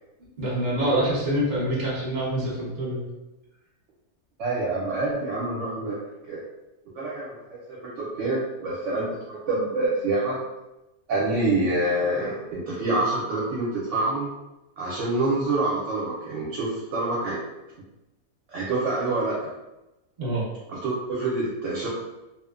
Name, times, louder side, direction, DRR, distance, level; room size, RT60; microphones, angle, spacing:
voice 1, 0.4-3.1 20.2-20.4, right 1 dB, 35° right, -6 dB, 0.8 m, -26 dB
voice 2, 4.4-6.0 6.3-6.4 6.9-10.4 11.1-14.3 14.8-17.4 18.5-19.4 20.7-21.9, right 2 dB, 65° right, -6 dB, 0.8 m, -26 dB
2.7 x 2.1 x 2.4 m, 1.0 s
omnidirectional pair, 1.6 m